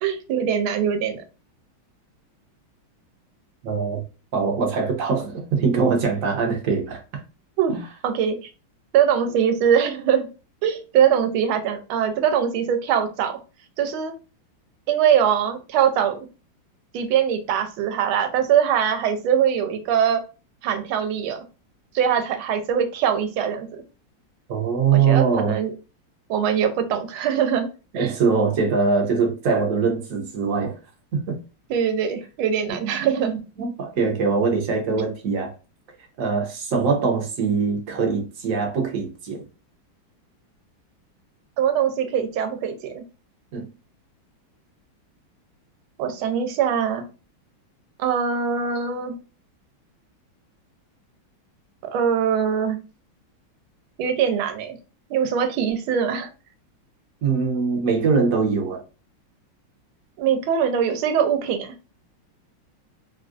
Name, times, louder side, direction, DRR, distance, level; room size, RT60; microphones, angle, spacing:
voice 1, 0.0-1.2 7.6-7.8 8.0-8.5 8.9-10.3 10.6-13.4 13.8-14.1 14.9-16.2 16.9-20.2 20.6-21.4 21.9-23.8 24.9-25.7 26.3-27.7 27.9-28.1 31.7-33.4 41.6-43.0 46.0-47.0 48.0-49.2 51.9-52.8 54.0-54.8 55.1-56.3 60.2-61.7, right 8 dB, 90° right, 1.4 m, -22 dB
voice 2, 3.6-4.0 4.3-7.0 7.7-7.8 24.5-25.6 27.9-30.8 31.1-31.3 32.7-32.8 33.6-35.5 36.2-39.4 43.5-43.7 57.2-58.8, right 5 dB, 55° right, 0.9 m, -22 dB
3.4 x 2.4 x 2.4 m
omnidirectional pair, 2.2 m